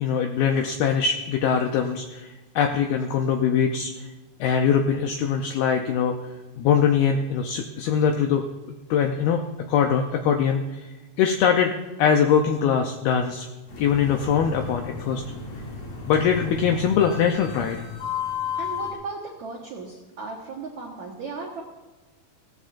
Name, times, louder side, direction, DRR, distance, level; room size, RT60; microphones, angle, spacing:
voice 1, 0.0-4.1 4.4-6.1 6.6-8.4 8.9-9.4 9.7-10.9 11.2-11.7 12.0-13.5 13.8-15.2 16.1-17.9, left 7 dB, 90° left, 4 dB, 2.1 m, -22 dB
sound 1, 13.7-18.9, left 6 dB, 55° left, 3.7 m, -33 dB
voice 2, 18.6-21.6, right 4 dB, 80° right, -1 dB, 1.6 m, -36 dB
18.0 x 15.0 x 2.5 m, 1.2 s
omnidirectional pair, 5.3 m